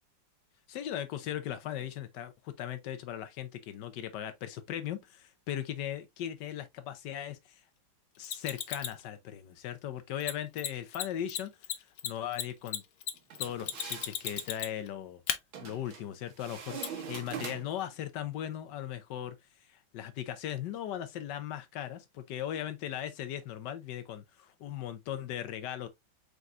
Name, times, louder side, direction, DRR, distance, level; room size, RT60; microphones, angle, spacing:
voice 1, 0.7-7.6 8.2-11.5 12.0-12.8 13.4-15.2 15.6-19.3 19.9-25.9, left 11 dB, 65° left, 1.2 m, -38 dB
Mechanisms, 8.2-9.0 10.2-10.3 10.6-10.7 10.9-11.0 11.3-14.9 15.3-15.4 16.8-16.9, left 11 dB, 90° left, 1.6 m, -34 dB
sound 1, 13.3-14.5 15.5-16.0 16.4-17.9, right 7 dB, 75° right, 1.8 m, -43 dB
4.7 x 4.0 x 2.4 m
omnidirectional pair, 2.2 m